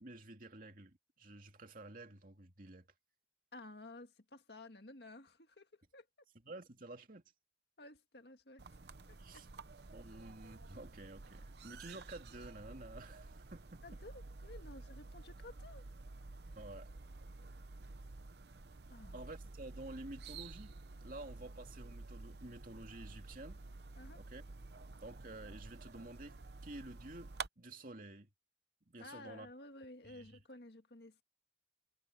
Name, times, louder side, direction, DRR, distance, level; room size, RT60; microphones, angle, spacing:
voice 1, 0.0-2.9 6.4-7.2 9.2-9.5 9.9-13.8 16.5-16.9 19.1-20.7 21.0-23.6 24.1-24.4 25.0-28.3 28.9-29.5 30.0-30.4, right 2 dB, 50° right, 2.4 m, -51 dB
voice 2, 3.5-6.1 7.8-8.7 9.1-9.5 13.8-15.8 18.9-19.2 24.0-24.2 29.0-31.2, left 2 dB, 65° left, 2.0 m, -54 dB
sound 1, 8.6-27.5, right 3 dB, 65° right, 0.8 m, -51 dB
head